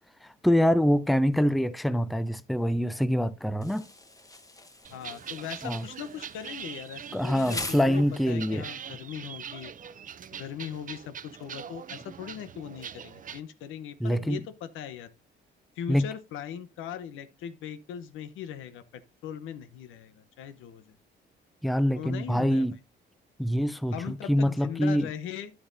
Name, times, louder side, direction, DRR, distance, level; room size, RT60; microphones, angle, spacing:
voice 1, 0.2-3.8 5.6-5.8 7.1-8.6 14.0-14.4 15.9-16.1 21.6-22.8 23.4-25.1, equal, ahead, 0.5 m, -25 dB
Insect, 3.6-8.6, left 2 dB, 15° left, 1.2 m, -43 dB
sound 1, 4.8-13.4, right 8 dB, 40° right, 0.6 m, -43 dB
voice 2, 4.9-9.7 10.3-15.1 15.8-20.9 21.9-22.7 23.9-25.5, left 9 dB, 90° left, 0.9 m, -39 dB
10.5 x 8.6 x 2.7 m
cardioid pair, 90°, 20 cm